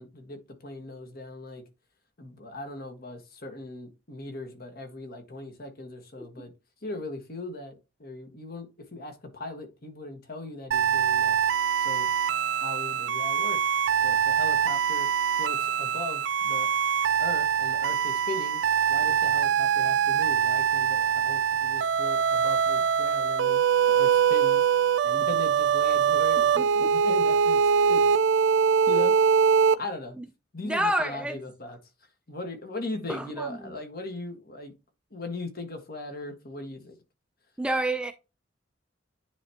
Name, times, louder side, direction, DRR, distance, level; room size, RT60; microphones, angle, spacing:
voice 1, 0.0-1.6 2.2-6.5 6.8-11.4 11.8-12.1 12.5-13.6 14.0-15.1 15.4-16.7 17.2-18.6 18.9-23.6 23.9-24.6 25.0-28.1 28.9-29.3 29.8-30.2 30.5-31.8 32.3-34.7 35.1-37.0, left 2 dB, 55° left, 1.5 m, -39 dB
sound 1, 10.7-29.8, right 7 dB, 70° right, 0.4 m, -23 dB
voice 2, 26.6-26.9 30.6-31.4 33.1-33.7 37.6-38.1, right 1 dB, 5° right, 0.4 m, -29 dB
9.8 x 3.5 x 2.8 m
head